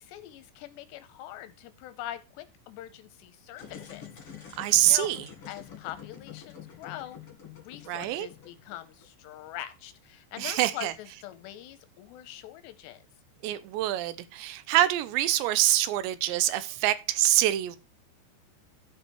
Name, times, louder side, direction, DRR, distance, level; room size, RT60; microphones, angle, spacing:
voice 1, 0.0-4.1 4.6-5.1 5.5-7.2 7.5-13.0, left 13 dB, 80° left, 2.7 m, -43 dB
sound 1, 3.5-9.3, left 8 dB, 35° left, 2.7 m, -47 dB
voice 2, 4.6-5.2 7.9-8.3 10.4-10.9 13.4-17.8, right 14 dB, 85° right, 2.9 m, -25 dB
13.5 x 5.6 x 4.5 m
omnidirectional pair, 5.2 m